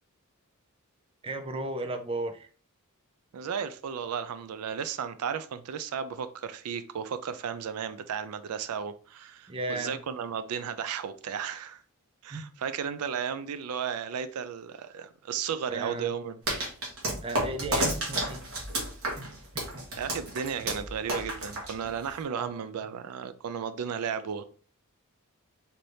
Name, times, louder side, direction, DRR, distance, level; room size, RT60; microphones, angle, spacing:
voice 1, 1.2-2.5 9.5-10.0 12.3-12.5 15.7-16.1 17.2-18.4 19.2-19.8 22.4-22.6, right 2 dB, 25° right, 0.4 m, -35 dB
voice 2, 3.3-11.8 12.2-16.4 20.0-24.4, right 7 dB, 90° right, 0.4 m, -34 dB
sound 1, 16.5-22.2, right 1 dB, 65° right, 1.6 m, -31 dB
4.3 x 2.6 x 3.2 m
head